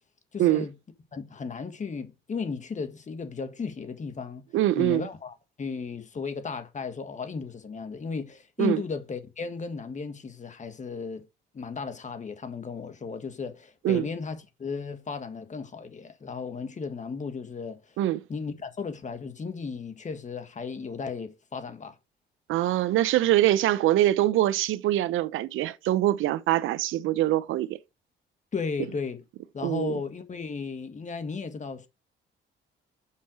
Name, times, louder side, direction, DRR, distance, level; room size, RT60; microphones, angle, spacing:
voice 1, 0.3-0.7 1.1-4.4 4.8-11.2 11.5-17.9 18.3-22.0 28.5-29.2 29.5-31.9, left 5 dB, 40° left, 1.7 m, -35 dB
voice 2, 4.5-5.1 8.6-8.8 13.8-14.1 18.0-18.2 22.5-27.8 29.6-29.9, right 14 dB, 85° right, 0.7 m, -24 dB
7.5 x 5.6 x 6.3 m
cardioid pair, 90°, 20 cm